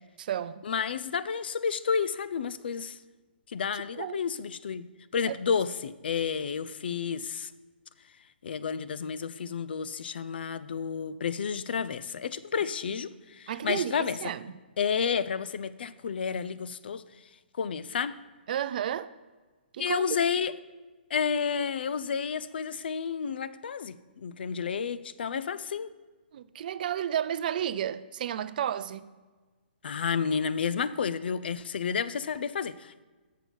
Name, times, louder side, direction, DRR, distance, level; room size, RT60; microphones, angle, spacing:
voice 1, 0.0-0.7 3.7-4.2 5.3-5.4 13.5-14.6 18.5-19.1 19.7-20.0 26.3-29.1, right 10 dB, 50° right, 0.4 m, -32 dB
voice 2, 0.6-3.0 3.5-4.9 5.1-7.5 8.4-14.2 14.8-17.0 17.6-18.2 19.8-20.6 21.1-25.9 29.8-33.0, left 6 dB, 65° left, 0.4 m, -31 dB
6.6 x 5.9 x 5.1 m
hypercardioid pair, 130°, 6 cm